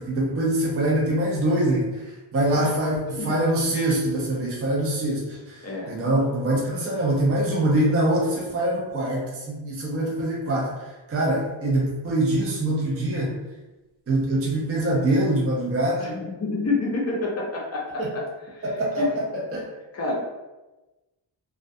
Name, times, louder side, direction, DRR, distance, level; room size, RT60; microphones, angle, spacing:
voice 1, 0.0-10.7 11.1-13.3 14.1-16.1 18.0-18.1 18.6-19.6, right 1 dB, 30° right, -4 dB, 0.5 m, -24 dB
voice 2, 2.5-3.3 5.6-6.0 16.0-18.2 18.5-18.6 19.0-19.2 19.9-20.1, left 3 dB, 35° left, -2 dB, 0.5 m, -29 dB
2.2 x 2.2 x 2.5 m, 1.1 s
wide cardioid pair, 130°, 46 cm